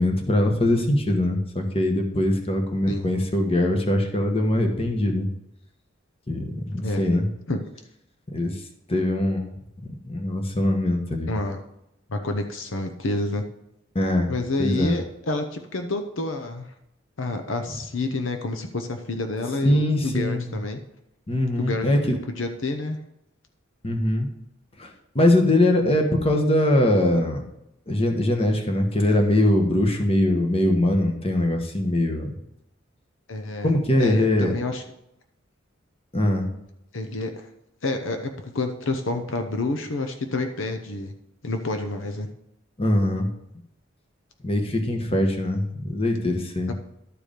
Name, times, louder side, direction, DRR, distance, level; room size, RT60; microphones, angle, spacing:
voice 1, 0.0-5.3 6.3-7.3 8.3-8.5 8.9-9.5 10.0-11.3 13.9-14.3 14.6-14.9 19.6-20.5 21.3-22.2 23.8-24.3 24.8-27.4 27.9-32.3 33.6-34.5 36.1-36.5 42.8-43.3 44.4-46.7, left 1 dB, 30° left, 4 dB, 1.2 m, -22 dB
voice 2, 2.9-3.2 6.8-7.0 7.5-7.6 11.3-11.6 12.1-13.4 14.3-16.7 17.2-20.8 21.6-23.0 33.3-33.7 34.0-34.8 36.9-37.5 37.8-41.1 41.4-42.3 46.7-46.8, left 2 dB, 65° left, 6 dB, 0.8 m, -29 dB
12.0 x 4.8 x 5.1 m, 0.81 s
head